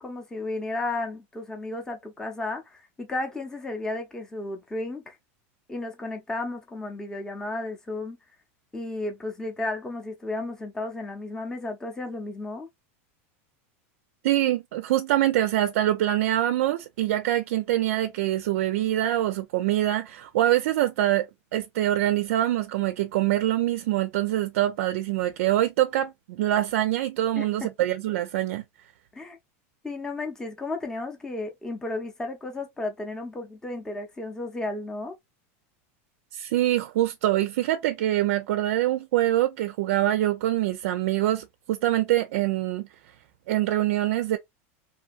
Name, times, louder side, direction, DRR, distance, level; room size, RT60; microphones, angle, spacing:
voice 1, 0.0-5.2 5.7-8.2 8.7-12.7 27.4-27.7 29.1-29.4 29.8-35.1, left 2 dB, 10° left, 0.6 m, -33 dB
voice 2, 14.2-21.3 21.5-28.6 36.3-42.9 43.5-44.4, right 13 dB, 75° right, 0.4 m, -24 dB
2.7 x 2.6 x 2.3 m
supercardioid pair, 145°, 8 cm